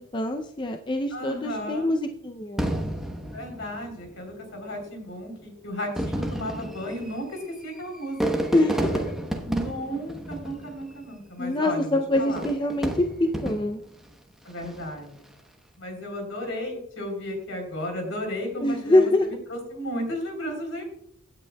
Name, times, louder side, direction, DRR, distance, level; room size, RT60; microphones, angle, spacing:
voice 1, 0.0-2.7 8.5-9.0 11.4-13.8 18.6-19.3, left 1 dB, 20° left, 4 dB, 0.5 m, -24 dB
voice 2, 1.1-1.9 3.3-8.5 9.4-12.4 14.4-15.3 15.8-20.8, equal, 65° left, 3 dB, 3.6 m, -34 dB
Fireworks, 2.6-4.2 5.0-5.1 5.8-11.1 12.2-13.9 14.5-15.0, right 1 dB, ahead, 0.9 m, -31 dB
16.5 x 8.9 x 2.3 m, 0.72 s
head